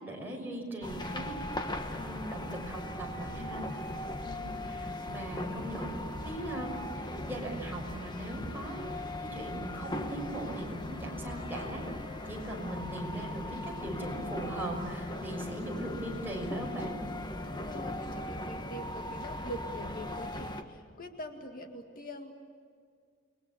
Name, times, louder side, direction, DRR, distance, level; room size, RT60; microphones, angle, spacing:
voice 1, 0.0-1.6 1.9-3.9 4.2-11.9 12.3-17.0, right 1 dB, 10° right, -1 dB, 6.2 m, -40 dB
sound 1, 0.8-20.6, left 1 dB, 25° left, 1.5 m, -39 dB
voice 2, 17.4-22.3, equal, 50° left, 3 dB, 2.0 m, -44 dB
29.5 x 22.0 x 8.5 m, 2.1 s
head